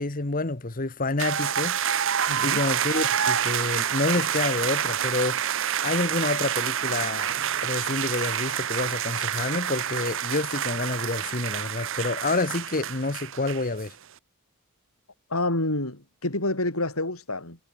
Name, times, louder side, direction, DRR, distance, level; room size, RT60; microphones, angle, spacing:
voice 1, 0.0-1.8 2.4-5.4 5.8-7.3 7.6-13.9, left 2 dB, 40° left, 1.3 m, -28 dB
sound 1, 1.2-13.9, right 9 dB, 60° right, 1.0 m, -28 dB
voice 2, 2.3-2.6 15.3-17.6, left 2 dB, 75° left, 6.3 m, -28 dB
head